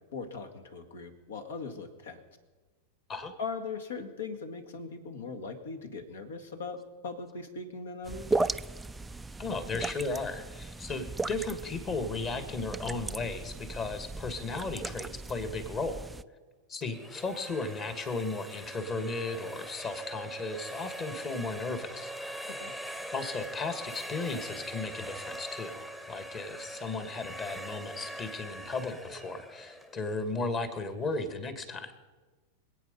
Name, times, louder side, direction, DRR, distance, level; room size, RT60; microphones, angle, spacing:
voice 1, 0.1-2.2 3.4-8.4 22.5-22.7, left 4 dB, 65° left, 7 dB, 1.9 m, -40 dB
sound 1, 8.0-16.2, right 3 dB, 10° right, 0.4 m, -36 dB
voice 2, 9.4-16.1 16.7-22.1 23.1-31.9, left 3 dB, 30° left, 9 dB, 2.0 m, -35 dB
sound 2, 16.8-30.7, right 1 dB, 10° left, 1.2 m, -42 dB
25.5 x 8.8 x 5.4 m, 1.3 s
figure-of-eight pair, 90°, 0 cm